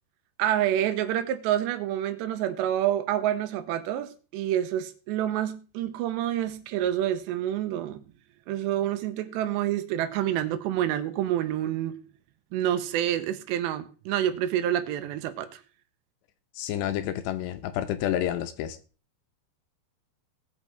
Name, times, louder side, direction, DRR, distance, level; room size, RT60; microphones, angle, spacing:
voice 1, 0.4-8.0 8.5-12.0 12.5-15.6, right 11 dB, 85° right, 2.9 m, -28 dB
voice 2, 16.6-18.8, left 11 dB, 80° left, 2.9 m, -29 dB
19.0 x 6.4 x 3.3 m
omnidirectional pair, 5.1 m